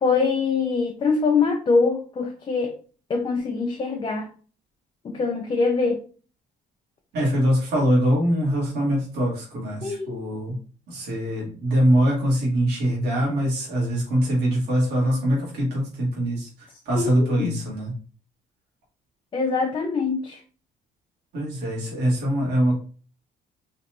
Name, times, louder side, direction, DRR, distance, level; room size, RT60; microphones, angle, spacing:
voice 1, 0.0-2.7 3.1-4.3 5.0-6.0 9.8-10.3 16.9-17.5 19.3-20.4, left 4 dB, 30° left, 2 dB, 0.6 m, -23 dB
voice 2, 7.1-10.6 10.9-16.5 16.9-17.9 21.3-22.8, equal, 80° right, -4 dB, 2.1 m, -23 dB
4.2 x 2.9 x 3.0 m, 0.41 s
cardioid pair, 110°, 17 cm